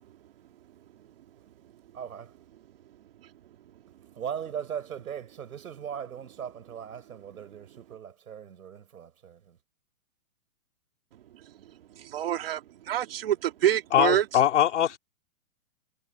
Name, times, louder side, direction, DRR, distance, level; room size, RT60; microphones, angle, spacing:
voice 1, 1.9-2.3 4.2-9.6, right 8 dB, 80° right, 5.3 m, -39 dB
voice 2, 12.0-12.6 12.9-14.2, right 11 dB, 40° right, 2.7 m, -26 dB
voice 3, 13.9-15.0, left 10 dB, 55° left, 3.0 m, -22 dB
hypercardioid pair, 180°, 42 cm